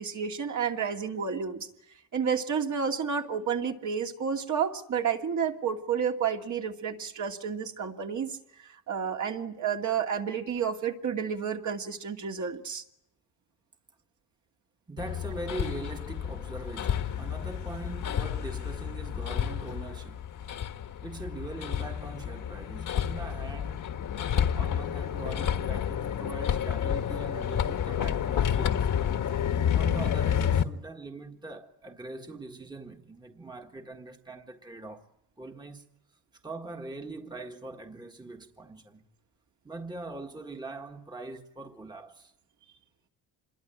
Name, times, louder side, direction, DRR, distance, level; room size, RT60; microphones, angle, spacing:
voice 1, 0.0-1.7 2.1-12.8, right 7 dB, 50° right, 2.7 m, -31 dB
voice 2, 14.9-20.3 21.0-23.9 24.3-28.9 29.6-35.1 35.4-35.9 36.4-39.1 39.6-42.3, right 2 dB, 10° right, 1.7 m, -42 dB
Hammer, 15.0-30.6, left 9 dB, 55° left, 1.5 m, -30 dB
27.0 x 22.0 x 9.1 m
cardioid pair, 135°, 37 cm